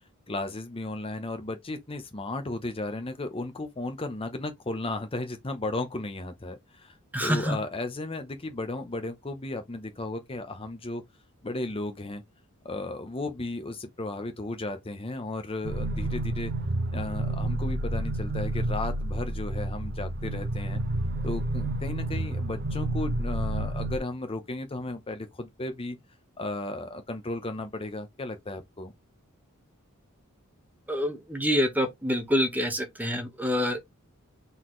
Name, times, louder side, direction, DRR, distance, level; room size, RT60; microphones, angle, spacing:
voice 1, 0.3-6.9 7.2-11.0 11.4-12.2 12.6-16.5 16.9-20.8 21.2-26.0 26.4-28.9, left 2 dB, 25° left, 0.8 m, -34 dB
voice 2, 7.1-7.6 30.9-33.8, equal, 10° right, 1.0 m, -26 dB
sound 1, 15.6-24.0, right 1 dB, 45° right, 0.7 m, -30 dB
4.2 x 3.9 x 3.1 m
head